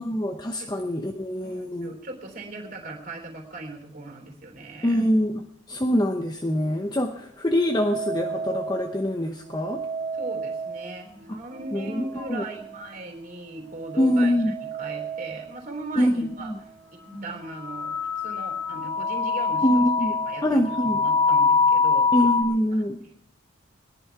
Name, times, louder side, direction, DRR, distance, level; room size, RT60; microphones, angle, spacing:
voice 1, 0.0-2.0 4.8-9.9 11.3-11.4 11.7-12.4 14.0-14.5 16.0-16.6 19.6-21.0 22.1-23.0, equal, 20° left, 3 dB, 0.8 m, -24 dB
voice 2, 1.4-5.0 10.1-14.3 14.8-16.5 17.2-19.8 20.3-22.1 22.5-22.8, right 2 dB, 40° right, 3 dB, 3.6 m, -38 dB
sound 1, 7.7-9.0 9.5-11.2 11.6-12.7 13.8-15.5 16.1-16.2 17.1-17.3 17.6-22.4, left 4 dB, 55° right, 2.4 m, -26 dB
20.5 x 11.0 x 4.7 m, 0.68 s
head